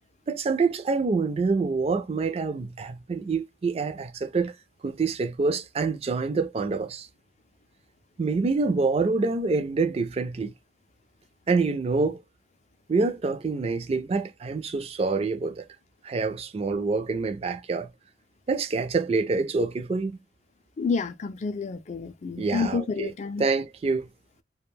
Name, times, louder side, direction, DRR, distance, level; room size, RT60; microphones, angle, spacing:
voice 1, 0.3-4.6 4.8-7.1 8.2-10.5 11.5-12.2 12.9-15.7 16.0-17.9 18.5-20.2 22.4-23.1 23.4-24.1, right 4 dB, 35° right, 0.3 m, -26 dB
voice 2, 20.8-23.4, left 4 dB, 40° left, 0.3 m, -29 dB
2.4 x 2.2 x 3.2 m
head